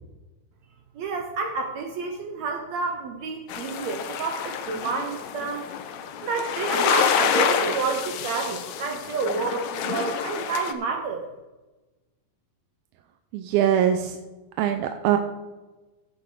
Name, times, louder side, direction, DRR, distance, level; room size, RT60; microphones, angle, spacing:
voice 1, 0.9-5.7 6.2-11.2, right 4 dB, 70° right, 3 dB, 1.7 m, -29 dB
sound 1, 3.5-10.7, left 8 dB, 75° left, 1.7 m, -28 dB
voice 2, 13.3-14.2 14.6-15.2, right 10 dB, 90° right, 6 dB, 2.5 m, -22 dB
16.0 x 6.2 x 5.0 m, 1.1 s
omnidirectional pair, 4.1 m